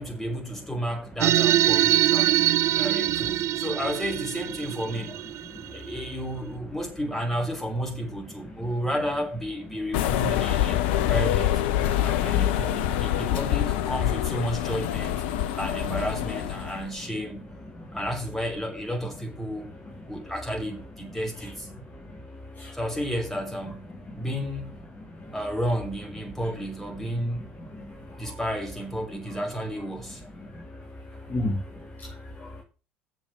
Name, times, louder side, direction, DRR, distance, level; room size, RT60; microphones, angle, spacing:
voice 1, 0.0-2.5 2.7-5.1 5.7-11.5 12.0-15.2 15.5-17.5 17.9-19.7 20.1-21.7 22.7-23.9 24.1-24.8 25.3-27.5 28.2-30.2, equal, 5° left, 5.5 m, -32 dB
sound 1, 1.2-6.1, right 13 dB, 50° right, 0.5 m, -23 dB
voice 2, 5.5-5.8 8.4-8.7 15.3-15.5 17.0-17.1 17.7-18.0 20.0-20.1 21.9-22.8 24.1-24.2 25.1-25.3 27.6-28.4 30.4-32.6, left 1 dB, 25° left, 3.1 m, -37 dB
sound 2, 9.9-16.9, left 12 dB, 70° left, 0.8 m, -25 dB
8.1 x 7.1 x 8.1 m
figure-of-eight pair, 65°, 6 cm